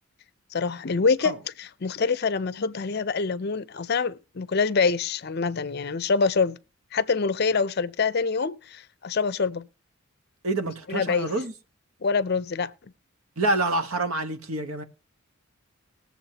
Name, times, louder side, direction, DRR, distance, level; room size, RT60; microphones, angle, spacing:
voice 1, 0.5-6.6 6.9-9.7 10.9-11.3 12.0-12.7, left 4 dB, 50° left, 0.5 m, -25 dB
voice 2, 10.4-11.5 13.4-14.8, right 2 dB, 80° right, 1.2 m, -27 dB
21.0 x 7.2 x 2.9 m
head